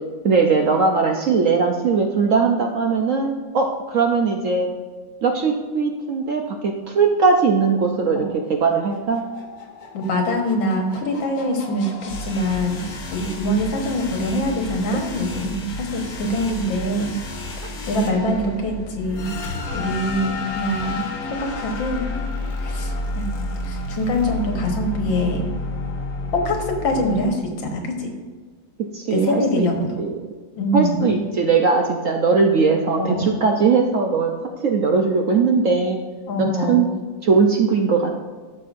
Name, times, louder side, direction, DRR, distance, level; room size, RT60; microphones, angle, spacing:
voice 1, 0.2-4.7 5.2-8.2 8.6-9.2 13.2-13.4 17.6-17.7 28.9-29.7 30.0-30.3 30.7-34.3 34.6-36.0 36.4-36.9 37.2-38.1, right 4 dB, 65° right, 2 dB, 0.8 m, -19 dB
sound 1, 8.5-27.3, left 2 dB, 55° left, 1.5 m, -31 dB
voice 2, 9.9-17.2 17.6-22.1 22.6-23.3 23.6-25.5 26.3-28.1 29.1-30.0 30.6-31.2 32.9-33.4 36.3-36.9, equal, 90° left, 3 dB, 2.0 m, -24 dB
13.5 x 6.6 x 2.6 m, 1.4 s
omnidirectional pair, 2.0 m